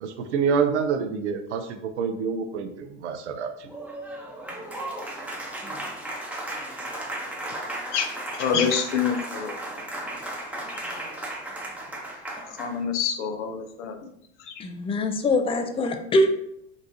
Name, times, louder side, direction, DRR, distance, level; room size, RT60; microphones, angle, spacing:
voice 1, 0.0-3.7, right 6 dB, 90° right, 7 dB, 0.5 m, -27 dB
Applause, 3.6-12.8, right 1 dB, 5° right, 0.7 m, -35 dB
voice 2, 8.4-9.5 10.7-10.8 12.5-14.1 14.5-14.6, left 7 dB, 80° left, 6 dB, 0.5 m, -27 dB
voice 3, 14.6-16.4, left 1 dB, 15° left, 7 dB, 0.3 m, -23 dB
3.8 x 2.4 x 2.6 m, 0.74 s
hypercardioid pair, 85°, 34 cm